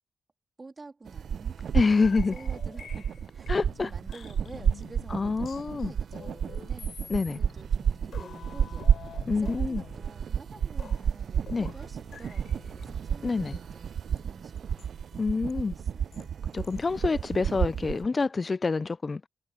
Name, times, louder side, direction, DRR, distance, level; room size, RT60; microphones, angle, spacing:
voice 1, 0.6-1.6 2.1-7.0 7.3-9.0 9.3-14.9 15.5-16.2, right 3 dB, 40° right, 3.4 m, -49 dB
sound 1, 1.1-18.1, right 8 dB, 75° right, 0.4 m, -31 dB
voice 2, 1.7-2.3 3.5-3.9 5.1-5.9 7.1-7.4 9.3-9.8 11.5-11.7 13.2-13.6 15.2-15.7 16.5-19.3, left 4 dB, 45° left, 0.4 m, -27 dB
sound 2, 2.0-17.3, left 7 dB, 75° left, 3.7 m, -49 dB
supercardioid pair, 50°, 0 cm